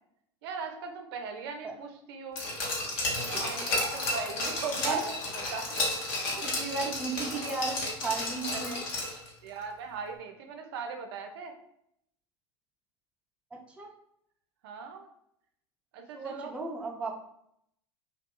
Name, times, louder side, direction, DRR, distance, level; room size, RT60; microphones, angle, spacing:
voice 1, 0.4-2.4 3.1-5.2 5.5-5.7 6.0-6.5 8.5-8.8 9.4-11.5 14.6-15.1 15.9-16.5, right 5 dB, 60° right, 4 dB, 0.4 m, -39 dB
Glass, 2.4-9.3 9.6-9.7, left 2 dB, 55° left, 1.0 m, -32 dB
voice 2, 3.2-3.9 4.8-5.0 6.4-8.8 13.5-13.9 16.1-17.1, right 4 dB, 10° right, 0 dB, 0.4 m, -35 dB
2.7 x 2.2 x 2.3 m, 0.73 s
hypercardioid pair, 85°, 14 cm